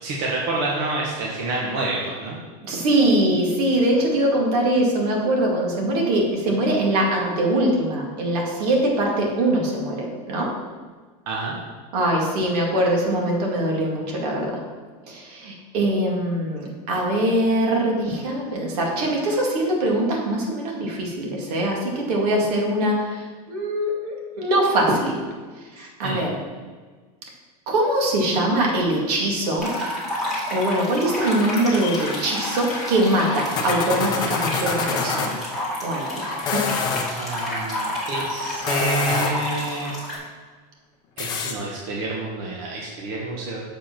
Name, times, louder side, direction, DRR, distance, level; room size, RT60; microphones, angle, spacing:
voice 1, 0.0-2.4 11.3-11.6 26.0-26.2 37.2-39.9 41.2-43.6, right 2 dB, 45° right, -3 dB, 1.2 m, -28 dB
voice 2, 2.6-10.5 11.9-14.6 15.1-25.2 25.8-26.4 27.7-29.7 30.5-35.3 35.8-36.3 36.5-36.7, right 1 dB, 70° right, -1 dB, 2.2 m, -22 dB
sound 1, 29.6-40.2, left 1 dB, ahead, 2.0 m, -30 dB
sound 2, 31.2-35.3 36.3-37.1 38.5-39.5 41.2-41.5, left 5 dB, 20° left, 0.6 m, -28 dB
6.9 x 5.0 x 5.9 m, 1.4 s
supercardioid pair, 175°, 20 cm